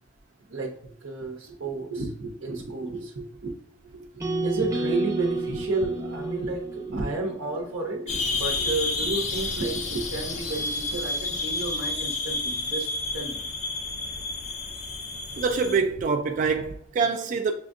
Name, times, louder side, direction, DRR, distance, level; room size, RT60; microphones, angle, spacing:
voice 1, 0.5-3.5 3.8-13.4, right 3 dB, 75° right, 0.7 m, -32 dB
sound 1, 4.2-8.3, right 2 dB, 15° right, 0.7 m, -31 dB
sound 2, 8.1-15.8, left 3 dB, 35° left, 0.4 m, -30 dB
voice 2, 15.3-17.5, right 5 dB, 40° right, 0.3 m, -25 dB
6.1 x 2.5 x 2.5 m
head